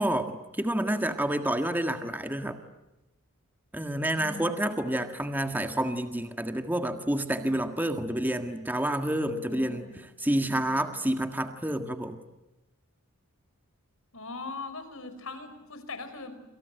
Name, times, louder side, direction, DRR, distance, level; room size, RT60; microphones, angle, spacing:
voice 1, 0.0-2.6 3.7-12.2, right 1 dB, 10° right, 7 dB, 1.7 m, -29 dB
voice 2, 9.5-10.0 14.1-16.4, left 3 dB, 65° left, 10 dB, 5.2 m, -41 dB
28.5 x 27.0 x 7.8 m, 0.97 s
head